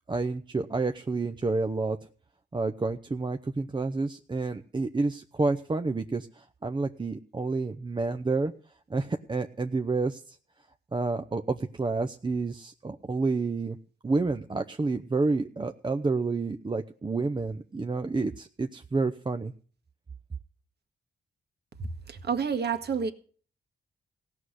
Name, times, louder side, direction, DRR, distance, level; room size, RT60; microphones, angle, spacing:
voice 1, 0.1-2.0 2.5-8.5 8.9-10.4 10.9-13.8 14.0-19.5, right 3 dB, 25° right, 7 dB, 0.8 m, -29 dB
voice 2, 22.1-23.1, right 6 dB, 60° right, 6 dB, 1.9 m, -29 dB
17.0 x 6.3 x 9.9 m, 0.43 s
cardioid pair, 85°, 19 cm